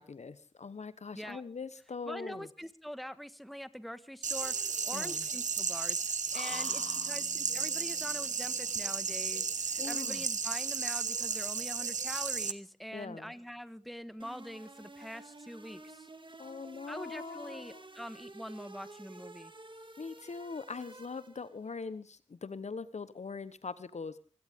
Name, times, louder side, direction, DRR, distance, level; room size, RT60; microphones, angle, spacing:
voice 1, 0.0-2.5 4.9-5.3 6.3-7.2 9.8-10.3 12.9-13.3 16.4-17.8 20.0-24.2, left 4 dB, 65° left, 15 dB, 1.0 m, -42 dB
voice 2, 2.1-6.0 6.3-16.1 16.9-19.5, equal, ahead, 13 dB, 1.5 m, -44 dB
sound 1, 4.2-12.5, right 5 dB, 75° right, 1.0 m, -34 dB
Bass guitar, 6.5-10.8, left 2 dB, 45° left, 4.2 m, -59 dB
sound 2, 14.2-21.6, right 2 dB, 40° right, 2.2 m, -52 dB
23.5 x 16.0 x 3.6 m, 0.38 s
cardioid pair, 40°, 13 cm